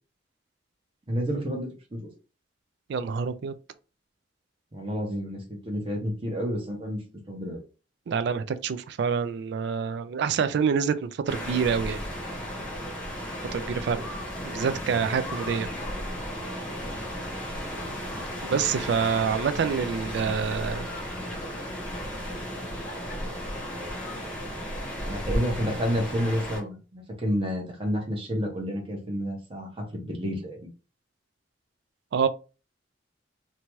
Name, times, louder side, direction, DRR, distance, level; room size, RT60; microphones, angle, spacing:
voice 1, 1.1-2.1 4.7-7.0 7.3-7.6 25.1-30.6, equal, 30° right, 0.9 m, -30 dB
voice 2, 2.9-3.5 8.1-12.0 13.4-14.1 14.4-15.7 18.4-20.9 32.1-32.3, right 6 dB, 65° right, 0.3 m, -27 dB
sound 1, 11.3-26.6, equal, 5° left, 0.9 m, -34 dB
2.7 x 2.2 x 3.0 m
head